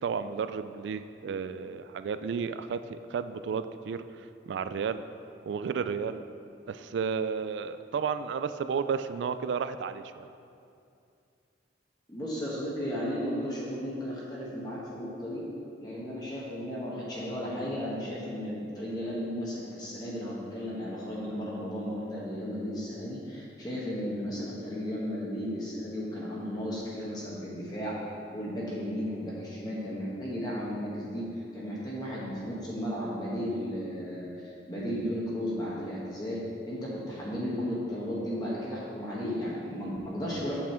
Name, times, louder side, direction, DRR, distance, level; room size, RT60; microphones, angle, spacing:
voice 1, 0.0-4.0 4.5-5.0 5.5-6.2 6.7-10.3, right 6 dB, 80° right, 11 dB, 0.3 m, -32 dB
voice 2, 12.1-15.4 15.8-28.0 28.3-31.2 31.5-40.6, equal, 20° left, -7 dB, 1.2 m, -34 dB
8.5 x 5.9 x 4.4 m, 2.5 s
head